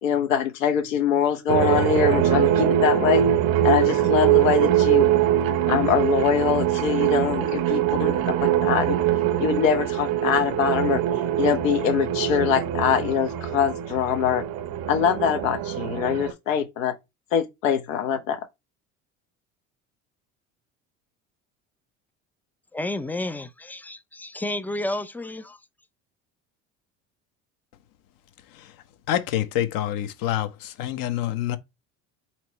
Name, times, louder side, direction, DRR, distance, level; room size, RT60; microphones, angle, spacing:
voice 1, 0.0-3.2 3.6-5.0 5.7-8.1 8.4-9.0 9.4-11.0 11.4-14.4 14.9-16.9 17.3-18.4, left 8 dB, 85° left, 1.0 m, -23 dB
sound 1, 1.5-16.3, right 11 dB, 65° right, 0.7 m, -23 dB
voice 2, 22.7-25.6, left 1 dB, 5° left, 0.3 m, -31 dB
voice 3, 29.1-31.6, left 12 dB, 60° left, 0.8 m, -26 dB
4.2 x 3.0 x 3.0 m
hypercardioid pair, 75°, 38 cm